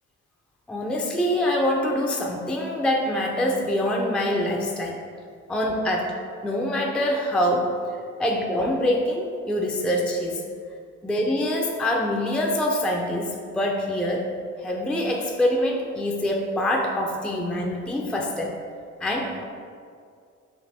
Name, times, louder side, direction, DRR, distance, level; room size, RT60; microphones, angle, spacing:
voice 1, 0.7-5.0 5.5-6.1 6.4-7.7 8.2-10.4 11.0-14.3 14.6-18.5 19.0-19.4, left 1 dB, 5° left, -1 dB, 0.4 m, -25 dB
5.2 x 2.5 x 4.0 m, 2.3 s
cardioid pair, 90°, 30 cm